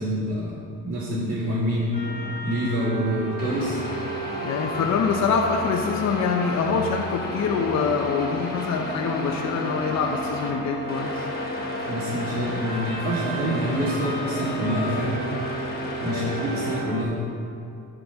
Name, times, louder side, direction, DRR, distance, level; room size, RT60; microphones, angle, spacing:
voice 1, 0.0-2.0 2.4-3.8 11.9-15.2 16.0-17.2, equal, 50° right, -8 dB, 2.2 m, -26 dB
sound 1, 1.9-17.0, right 1 dB, 20° right, 2.4 m, -34 dB
sound 2, 3.4-10.5 10.9-16.8, left 1 dB, 30° left, 1.7 m, -35 dB
voice 2, 4.4-11.3 16.1-16.7, left 5 dB, 65° left, 2 dB, 0.8 m, -25 dB
12.0 x 4.0 x 5.8 m, 2.4 s
cardioid pair, 90°, 30 cm